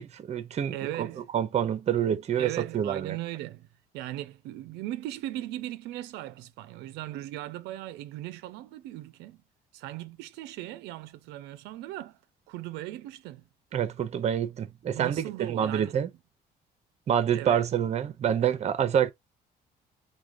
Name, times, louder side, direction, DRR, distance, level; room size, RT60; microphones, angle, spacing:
voice 1, 0.0-1.1 1.3-3.2 13.7-16.1 17.1-19.1, right 9 dB, 40° right, 0.6 m, -27 dB
voice 2, 0.7-1.3 2.4-3.7 3.9-9.4 9.7-12.2 12.5-13.4 15.0-15.9 17.3-17.6, right 14 dB, 90° right, 0.4 m, -38 dB
4.7 x 2.2 x 2.5 m
cardioid pair, 110°, 17 cm